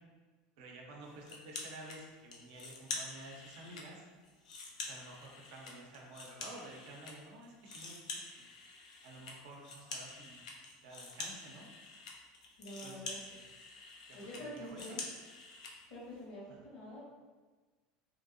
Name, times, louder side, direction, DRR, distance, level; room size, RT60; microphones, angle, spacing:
voice 1, 0.6-4.1 4.8-8.5 9.0-10.4 10.8-11.7 12.8-13.4 14.1-15.0 16.5-16.6, right 2 dB, 70° right, 0 dB, 0.6 m, -52 dB
sound 1, 1.2-2.0 2.3-3.8 4.2-7.1 7.4-15.7, left 3 dB, 90° left, 0.5 m, -46 dB
voice 2, 12.6-13.2 14.1-15.0 15.9-17.0, equal, 70° left, -6 dB, 1.3 m, -46 dB
2.9 x 2.6 x 2.6 m, 1.4 s
hypercardioid pair, 95°, 4 cm